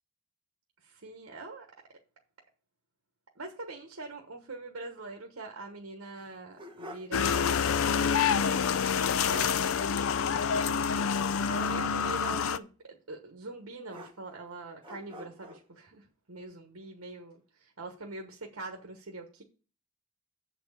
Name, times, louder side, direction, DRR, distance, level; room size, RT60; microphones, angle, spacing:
voice 1, 0.8-1.7 3.4-8.2 11.5-19.4, right 3 dB, 75° right, 1.1 m, -43 dB
sound 1, 6.2-7.2 7.5-7.6 8.9-9.0 9.3-9.6 11.7-12.4 13.9-14.5 14.8-15.6, equal, 25° right, 1.2 m, -46 dB
sound 2, 7.1-12.6, left 7 dB, 70° left, 0.4 m, -27 dB
7.7 x 4.4 x 7.0 m
head